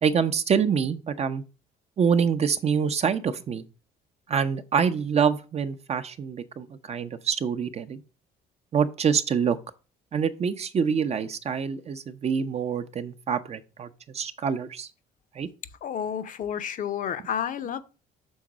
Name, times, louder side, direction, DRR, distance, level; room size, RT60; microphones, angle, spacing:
voice 1, 0.0-1.4 2.0-3.6 4.3-8.0 8.7-9.6 10.1-13.9 14.1-14.9 15.4-15.5, right 6 dB, 40° right, 0.7 m, -26 dB
voice 2, 15.8-17.8, left 8 dB, 50° left, 0.8 m, -30 dB
6.3 x 3.9 x 6.1 m
cardioid pair, 110°, 17 cm